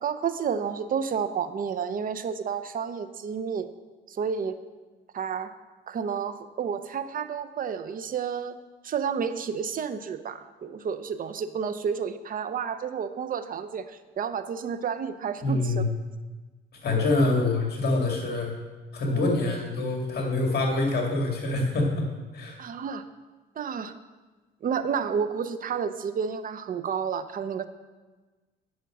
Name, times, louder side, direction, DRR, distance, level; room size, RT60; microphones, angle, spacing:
voice 1, 0.0-3.7 4.1-4.6 5.1-5.5 5.9-8.6 8.8-15.8 17.0-17.1 19.1-19.3 22.6-23.0 23.6-23.9 24.6-27.6, right 7 dB, 45° right, 11 dB, 0.6 m, -30 dB
voice 2, 15.4-15.9 16.8-18.5 18.9-22.6, left 2 dB, 50° left, 1 dB, 2.0 m, -25 dB
9.3 x 6.0 x 6.1 m, 1.3 s
cardioid pair, 100°, 20 cm